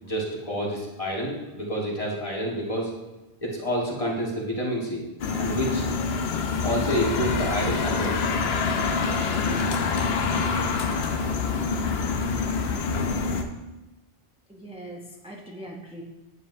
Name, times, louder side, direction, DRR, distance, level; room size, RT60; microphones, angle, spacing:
voice 1, 0.0-2.9 3.4-5.0 5.4-5.9 6.6-8.4, equal, 30° left, -3 dB, 1.6 m, -28 dB
sound 1, 5.2-13.4, left 4 dB, 70° left, 0.9 m, -26 dB
voice 2, 14.5-16.0, right 1 dB, 5° right, -1 dB, 0.6 m, -41 dB
9.7 x 7.5 x 2.7 m, 1.1 s
omnidirectional pair, 1.1 m